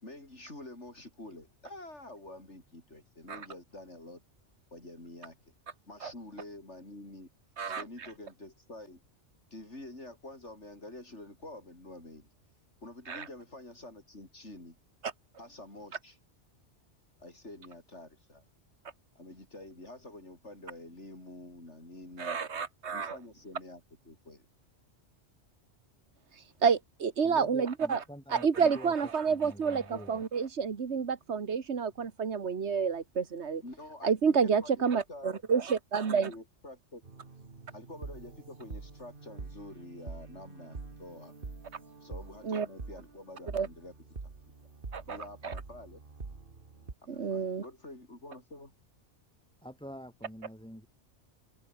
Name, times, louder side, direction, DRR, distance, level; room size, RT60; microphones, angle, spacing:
voice 1, 0.0-4.2 4.7-5.4 5.9-7.3 7.7-9.0 9.5-12.3 12.8-14.8 15.4-16.2 17.2-18.4 19.2-22.4 22.9-24.5 33.6-35.4 36.1-37.0 37.7-41.4 42.0-44.1 45.1-46.0 47.0-48.7, left 2 dB, 70° left, 6.8 m, -48 dB
voice 2, 22.2-23.2 26.6-28.0 28.3-33.6 34.0-36.3 42.4-42.7 43.5-43.7 44.9-45.2 45.4-45.5 47.1-47.6, right 6 dB, 65° right, 1.8 m, -29 dB
voice 3, 27.2-30.2 49.6-50.9, equal, 5° left, 5.4 m, -47 dB
sound 1, 37.0-46.9, right 4 dB, 45° right, 2.2 m, -46 dB
omnidirectional pair, 1.2 m